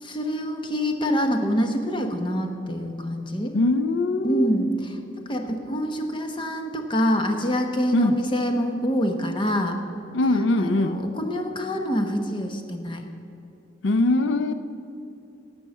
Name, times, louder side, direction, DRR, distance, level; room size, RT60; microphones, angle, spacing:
voice 1, 0.0-3.6 4.2-9.8 10.6-13.1, equal, 25° left, 5 dB, 1.0 m, -26 dB
voice 2, 3.5-4.5 7.9-8.2 10.1-11.0 13.8-14.5, left 2 dB, 80° left, 11 dB, 0.5 m, -22 dB
11.5 x 7.9 x 7.1 m, 2.8 s
head